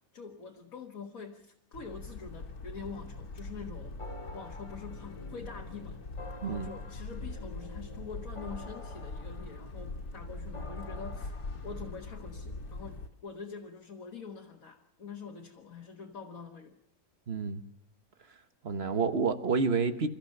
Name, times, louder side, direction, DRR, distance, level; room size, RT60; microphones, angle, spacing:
voice 1, 0.1-4.0 4.3-6.0 6.4-16.8, left 5 dB, 65° left, 0 dB, 1.9 m, -45 dB
sound 1, 1.7-13.1, left 2 dB, 80° left, 2.3 m, -42 dB
sound 2, 4.0-12.7, left 3 dB, 25° left, 0.8 m, -49 dB
voice 2, 17.3-17.6 18.6-20.1, right 5 dB, 45° right, 10 dB, 1.4 m, -29 dB
28.5 x 14.0 x 6.6 m, 0.77 s
omnidirectional pair, 1.6 m